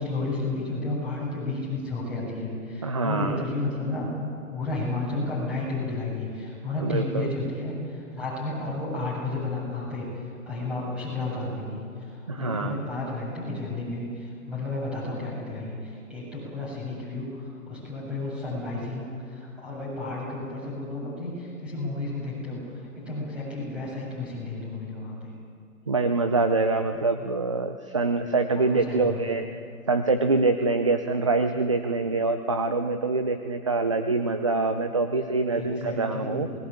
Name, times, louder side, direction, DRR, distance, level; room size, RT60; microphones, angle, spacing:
voice 1, 0.0-4.1 4.5-25.3 28.5-29.3 35.5-36.6, left 2 dB, ahead, -6 dB, 7.8 m, -32 dB
voice 2, 2.8-3.4 6.8-7.3 12.3-12.9 25.9-29.5 29.9-36.5, right 3 dB, 20° right, 7 dB, 0.6 m, -25 dB
28.0 x 20.0 x 8.7 m, 2.3 s
hypercardioid pair, 155°, 44 cm